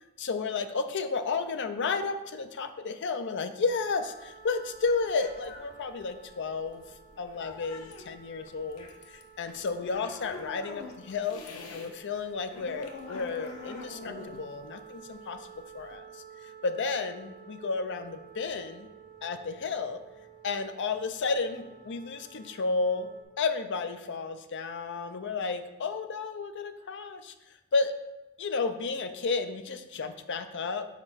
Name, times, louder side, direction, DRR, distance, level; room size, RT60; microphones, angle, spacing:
voice 1, 0.2-6.8 7.2-11.4 11.7-15.5 15.7-16.2 16.6-18.9 19.2-20.0 20.4-23.1 23.4-27.3 27.7-27.9 28.4-30.9, left 4 dB, 55° left, 9 dB, 0.5 m, -32 dB
sound 1, 3.7-23.2, right 6 dB, 50° right, 1.4 m, -52 dB
sound 2, 3.8-11.9 12.2-16.0, left 3 dB, 85° left, 0.8 m, -46 dB
5.0 x 4.2 x 5.6 m, 1.0 s
head